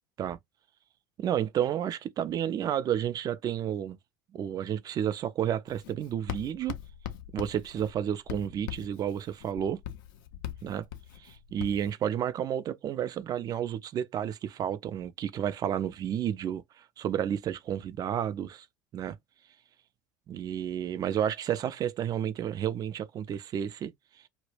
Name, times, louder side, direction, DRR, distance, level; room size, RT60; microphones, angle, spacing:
voice 1, 1.2-4.0 4.3-6.7 7.3-9.8 10.6-10.8 11.2-18.7 18.9-19.2 20.3-23.9, right 9 dB, 35° right, 0.3 m, -31 dB
Writing, 5.7-11.9, left 11 dB, 65° left, 0.4 m, -42 dB
2.1 x 2.0 x 3.2 m
hypercardioid pair, 70°, 11 cm